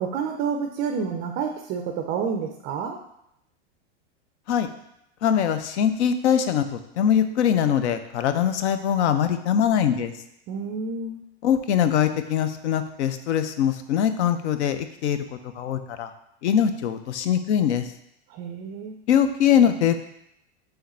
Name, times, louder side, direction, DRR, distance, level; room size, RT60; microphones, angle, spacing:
voice 1, 0.0-3.0 10.5-11.2 18.3-19.0, right 6 dB, 30° right, 4 dB, 0.3 m, -29 dB
voice 2, 5.2-10.1 11.4-15.2 15.5-16.1 16.4-17.9 19.1-20.0, left 9 dB, 75° left, 10 dB, 0.6 m, -22 dB
3.7 x 3.4 x 4.1 m, 0.78 s
hypercardioid pair, 120°, 35 cm